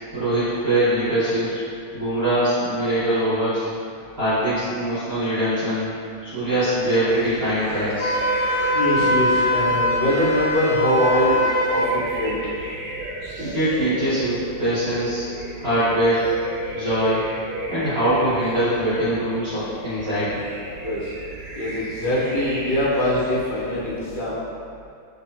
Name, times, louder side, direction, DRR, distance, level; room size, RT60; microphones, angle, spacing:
voice 1, 0.1-1.6 1.9-3.7 4.1-5.9 6.2-8.1 13.4-15.3 15.6-16.2 16.7-17.2 17.7-20.4, right 1 dB, 35° right, -14 dB, 1.2 m, -22 dB
sound 1, 7.1-24.2, right 2 dB, 80° right, 1.5 m, -34 dB
Wind instrument woodwind instrument, 8.0-11.9, equal, 85° left, 0.8 m, -22 dB
voice 2, 8.7-12.5 20.8-21.0 21.5-24.4, left 1 dB, 55° left, -9 dB, 1.3 m, -23 dB
3.5 x 3.1 x 2.8 m, 2.3 s
omnidirectional pair, 2.2 m